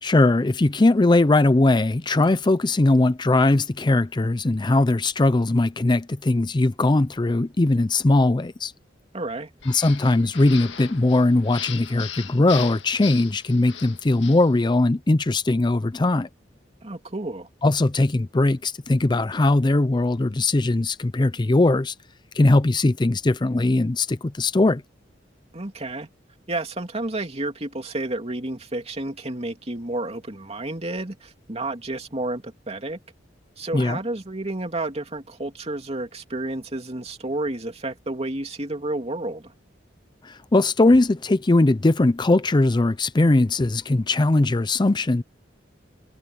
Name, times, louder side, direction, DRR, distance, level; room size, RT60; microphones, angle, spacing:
voice 1, 0.0-8.7 9.7-16.3 17.6-21.9 22.3-24.8 33.7-34.0 40.2-45.2, left 2 dB, 25° left, 0.5 m, -20 dB
voice 2, 9.1-9.5 16.8-17.5 25.5-26.1 26.5-33.0 33.6-39.5, right 2 dB, 35° right, 2.8 m, -31 dB
sound 1, 9.6-14.5, left 10 dB, 85° left, 1.8 m, -38 dB
head